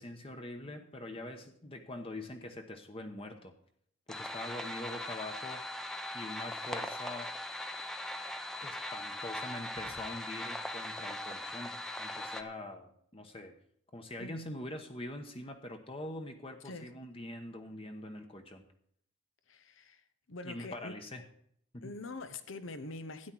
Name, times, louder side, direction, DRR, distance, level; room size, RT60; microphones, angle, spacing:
voice 1, 0.0-3.5 4.1-5.7 6.1-7.3 8.6-13.6 13.9-18.6 20.4-21.2 21.7-21.9, left 1 dB, 30° left, 1.0 m, -44 dB
sound 1, 4.1-12.4, left 1 dB, ahead, 0.7 m, -40 dB
voice 2, 19.5-20.0 20.3-20.9 21.8-23.3, left 2 dB, 80° left, 1.0 m, -44 dB
13.0 x 9.7 x 4.6 m
head